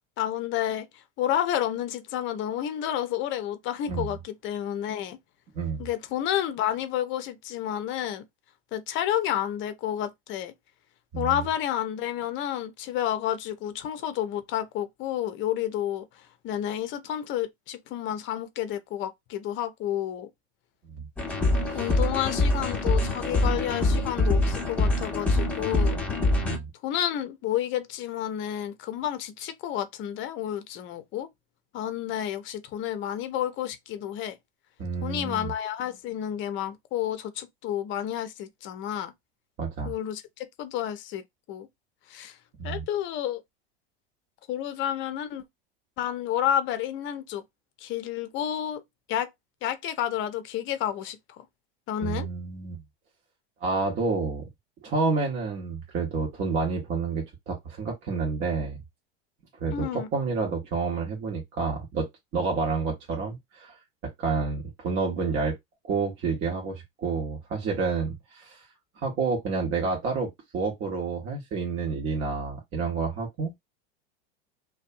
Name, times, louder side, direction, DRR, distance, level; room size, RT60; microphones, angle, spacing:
voice 1, 0.2-5.2 5.8-8.2 8.7-10.5 11.2-20.3 21.7-26.0 26.8-31.3 31.7-34.4 35.0-39.1 39.8-41.7 42.1-42.4 42.6-43.4 44.5-45.4 46.0-47.4 47.8-48.8 49.1-49.3 49.6-51.5 51.9-52.3 59.7-60.1, left 11 dB, 40° left, 0.6 m, -30 dB
voice 2, 11.1-11.4 21.0-21.1 21.7-21.9 26.4-26.7 34.8-35.5 39.6-39.9 42.6-42.8 52.0-52.8 53.6-54.4 54.8-58.8 59.6-62.1 62.3-63.8 64.0-65.6 65.9-68.6 69.0-73.6, right 4 dB, 40° right, 0.9 m, -29 dB
sound 1, 21.2-26.6, left 2 dB, 5° left, 0.7 m, -24 dB
2.5 x 2.2 x 2.5 m
hypercardioid pair, 105°, 30 cm